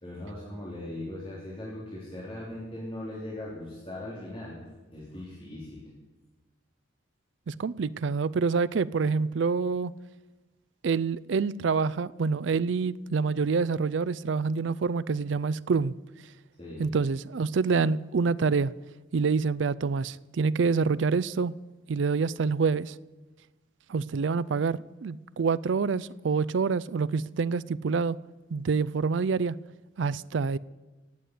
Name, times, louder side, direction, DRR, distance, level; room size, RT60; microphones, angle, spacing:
voice 1, 0.0-4.6 4.9-5.9 16.6-16.8, left 1 dB, 30° left, 3.3 m, -39 dB
voice 2, 7.5-9.9 10.8-15.9 16.8-18.7 19.1-21.5 21.9-22.9 23.9-28.2 28.5-29.6 30.0-30.6, right 5 dB, 75° right, 0.4 m, -27 dB
17.0 x 8.3 x 9.5 m
head